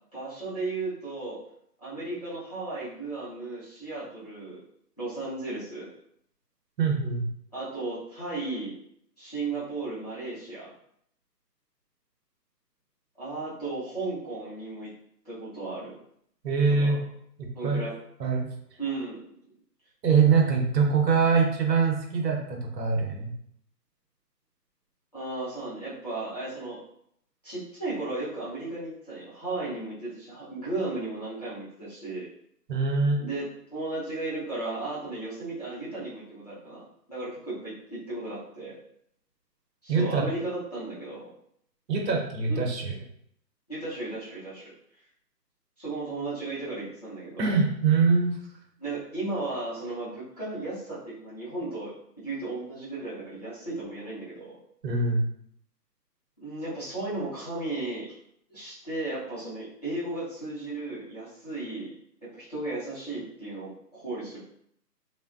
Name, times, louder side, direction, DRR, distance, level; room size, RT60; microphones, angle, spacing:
voice 1, 0.1-1.4 1.8-4.6 5.0-5.9 7.5-8.8 9.2-10.7 13.2-14.9 15.2-15.9 16.7-17.0 17.5-17.9 18.8-19.4 25.1-26.8 27.4-32.3 33.2-33.4 33.7-38.8 39.8-41.3 42.5-42.6 43.7-44.7 45.8-47.5 48.8-54.6 56.4-58.2 58.5-61.9 62.2-64.4, right 2 dB, 25° left, -11 dB, 0.6 m, -35 dB
voice 2, 6.8-7.2 16.4-17.0 17.6-17.8 18.2-18.5 20.0-23.3 32.7-33.2 39.9-40.2 41.9-42.9 47.4-48.3 54.8-55.2, right 5 dB, 80° right, 0 dB, 0.8 m, -23 dB
2.6 x 2.2 x 2.3 m, 0.70 s
hypercardioid pair, 160°, 50 cm